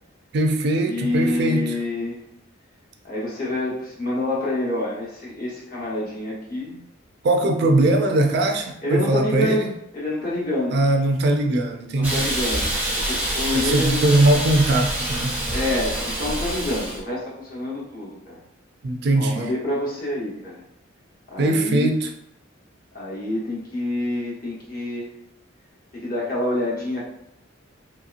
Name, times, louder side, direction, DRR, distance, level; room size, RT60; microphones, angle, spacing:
voice 1, 0.3-1.7 7.2-9.7 10.7-12.3 13.5-15.4 18.8-19.5 21.4-22.1, right 2 dB, 50° right, 4 dB, 0.3 m, -20 dB
voice 2, 0.8-2.2 3.0-6.8 8.8-10.7 12.0-14.0 15.5-18.4 19.2-20.5 21.3-21.9 22.9-25.1 25.9-27.1, left 2 dB, 45° left, -6 dB, 1.0 m, -27 dB
Hiss, 12.0-17.0, right 1 dB, 10° right, 0.6 m, -26 dB
3.0 x 2.8 x 2.4 m, 0.79 s
head